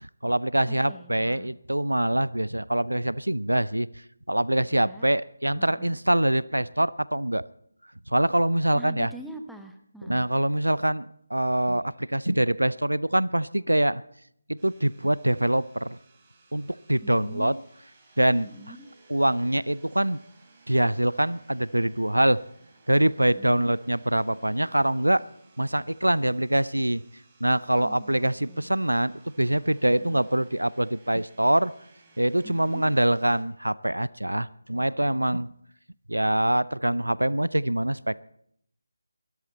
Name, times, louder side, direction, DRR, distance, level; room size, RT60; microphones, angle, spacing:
voice 1, 0.0-3.9 4.3-7.4 8.1-9.1 10.0-14.0 14.5-16.0 16.5-17.5 18.2-18.5 19.1-20.2 20.7-22.4 22.9-25.2 25.6-27.0 27.4-31.7 32.2-35.5 36.1-38.2, right 1 dB, 85° right, 20 dB, 0.5 m, -24 dB
voice 2, 0.7-1.5 4.7-5.1 5.5-6.0 8.7-10.3 17.0-17.6 18.4-18.9 27.7-28.7, right 1 dB, ahead, 4 dB, 0.8 m, -44 dB
sound 1, 14.6-33.4, right 3 dB, 20° right, 3.4 m, -59 dB
22.5 x 13.0 x 4.3 m, 0.69 s
figure-of-eight pair, 155°, 0 cm